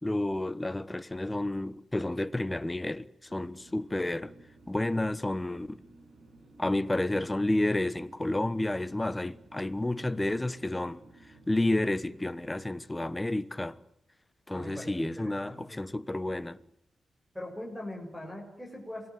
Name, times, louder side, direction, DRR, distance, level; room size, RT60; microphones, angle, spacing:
voice 1, 0.0-4.3 4.7-5.8 6.6-13.8 14.5-16.6, left 1 dB, 15° left, 1.2 m, -31 dB
sound 1, 3.3-12.7, right 2 dB, 65° right, 7.4 m, -56 dB
voice 2, 14.5-15.8 17.3-19.1, left 1 dB, ahead, 7.1 m, -41 dB
26.5 x 19.5 x 9.5 m
cardioid pair, 90°, 0 cm